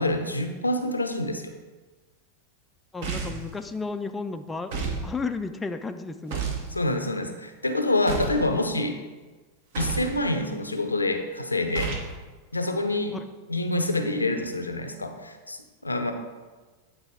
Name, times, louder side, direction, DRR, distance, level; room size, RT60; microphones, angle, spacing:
voice 1, 0.0-1.5 6.7-9.0 9.8-11.9 12.5-13.1 13.5-16.1, left 2 dB, 80° left, 7 dB, 0.5 m, -27 dB
voice 2, 2.9-6.4 13.1-13.2, left 4 dB, 10° left, 7 dB, 0.3 m, -33 dB
sound 1, 3.0-3.5 4.7-5.0 6.3-6.7 8.1-8.5 9.7-10.1 11.7-12.1, right 5 dB, 50° right, 1.0 m, -30 dB
8.9 x 3.9 x 3.5 m, 1.3 s
figure-of-eight pair, 90°, 0 cm